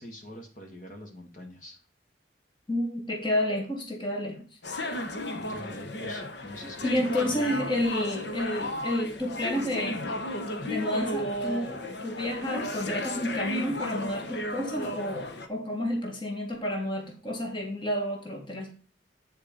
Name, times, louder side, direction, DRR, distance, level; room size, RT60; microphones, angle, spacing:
voice 1, 0.0-1.8 5.3-7.5, left 1 dB, 40° left, 2 dB, 1.8 m, -44 dB
voice 2, 2.7-4.4 6.8-10.0 10.6-18.7, left 1 dB, 25° left, 1 dB, 1.8 m, -30 dB
sound 1, 4.6-15.5, left 1 dB, 60° left, 1.1 m, -34 dB
9.7 x 4.5 x 5.1 m, 0.38 s
head